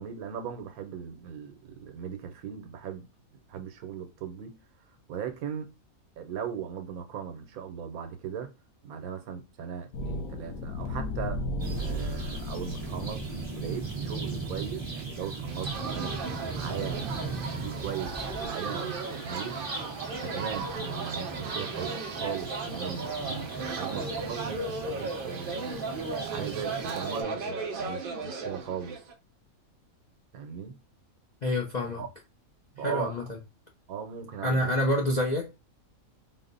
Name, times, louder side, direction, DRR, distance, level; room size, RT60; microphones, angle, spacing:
voice 1, 0.0-3.1 3.3-4.6 5.1-5.7 6.2-8.5 8.8-16.2 16.5-19.8 20.2-25.8 26.3-29.0 30.3-30.8 32.0-32.1 32.7-33.1 33.9-34.6, right 7 dB, 80° right, 1.2 m, -38 dB
sound 1, 9.9-18.5, left 1 dB, 85° left, 1.2 m, -37 dB
sound 2, 11.6-27.2, right 4 dB, 20° right, 1.0 m, -38 dB
sound 3, 15.5-29.1, right 3 dB, 55° right, 0.6 m, -36 dB
voice 2, 31.4-32.0 32.8-33.4 34.4-35.5, left 1 dB, 55° left, 0.4 m, -27 dB
4.0 x 2.0 x 3.8 m
omnidirectional pair, 1.5 m